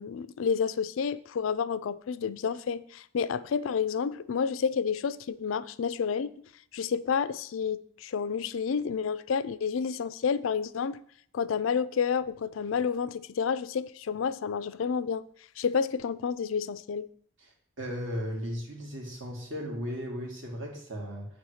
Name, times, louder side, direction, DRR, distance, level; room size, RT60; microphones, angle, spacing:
voice 1, 0.0-6.3 6.7-11.0 11.3-15.3 15.6-17.1, left 6 dB, 80° left, 0.4 m, -30 dB
voice 2, 17.8-21.3, equal, 75° right, 2.4 m, -36 dB
8.4 x 4.2 x 6.4 m
head